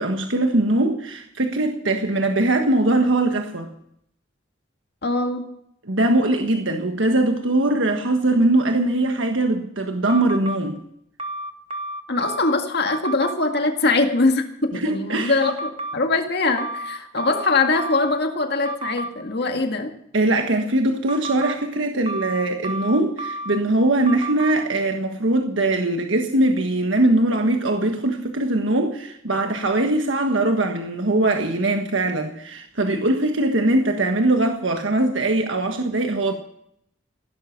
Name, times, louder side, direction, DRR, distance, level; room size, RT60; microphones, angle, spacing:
voice 1, 0.0-3.7 5.9-10.8 14.7-15.4 20.1-36.3, right 2 dB, 75° right, 1.5 m, -21 dB
voice 2, 5.0-5.5 12.1-19.9, left 3 dB, 55° left, 2.0 m, -22 dB
sound 1, 10.1-10.6 11.2-12.5 12.9-13.3 15.4-16.0 16.6-18.2 18.6-19.1 21.1-21.5 22.1-23.6 24.1-24.5, right 2 dB, 30° right, 1.7 m, -31 dB
16.0 x 12.5 x 6.0 m
head